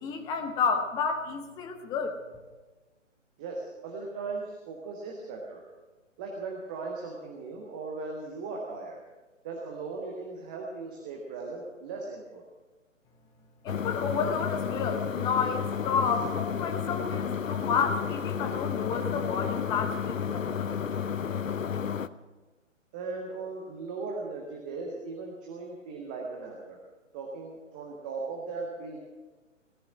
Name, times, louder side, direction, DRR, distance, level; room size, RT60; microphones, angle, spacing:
voice 1, 0.0-2.2 13.6-20.7, left 5 dB, 10° left, 5 dB, 0.9 m, -30 dB
voice 2, 3.4-5.6 6.2-9.0 9.4-12.4 22.9-26.8 27.1-29.0, right 3 dB, 5° right, 0 dB, 0.5 m, -38 dB
sound 1, 13.7-22.1, left 7 dB, 80° left, 0.8 m, -32 dB
17.5 x 12.5 x 6.1 m, 1.2 s
figure-of-eight pair, 135°, 39 cm